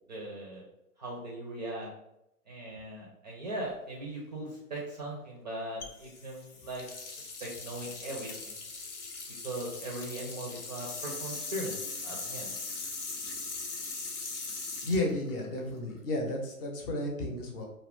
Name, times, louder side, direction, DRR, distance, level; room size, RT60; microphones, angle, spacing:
voice 1, 0.1-0.6 1.0-1.9 2.5-6.8 7.4-8.6 9.4-11.7 12.0-12.5, right 1 dB, 30° right, -3 dB, 0.4 m, -39 dB
sound 1, 5.8-16.0, left 3 dB, 75° left, 0.8 m, -40 dB
voice 2, 14.8-17.7, left 1 dB, 40° left, 0 dB, 0.7 m, -32 dB
2.3 x 2.1 x 3.5 m, 0.83 s
hypercardioid pair, 125°, 45 cm